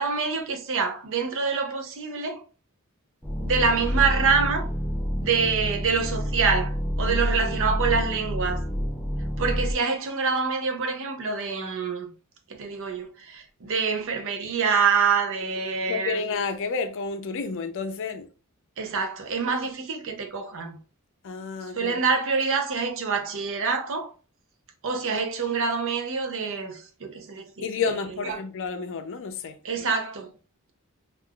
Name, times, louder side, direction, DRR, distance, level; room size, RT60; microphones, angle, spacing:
voice 1, 0.0-2.4 3.4-4.7 5.2-8.7 9.4-12.1 12.5-16.2 18.8-20.8 21.7-24.1 24.8-27.6 28.2-28.4 29.6-30.3, right 5 dB, 60° right, 0.6 m, -26 dB
sound 1, 3.2-9.7, equal, 5° left, 0.6 m, -28 dB
voice 2, 7.1-7.7 15.9-18.3 21.2-22.0 27.6-29.6, left 5 dB, 60° left, 0.5 m, -31 dB
3.6 x 2.4 x 2.2 m
head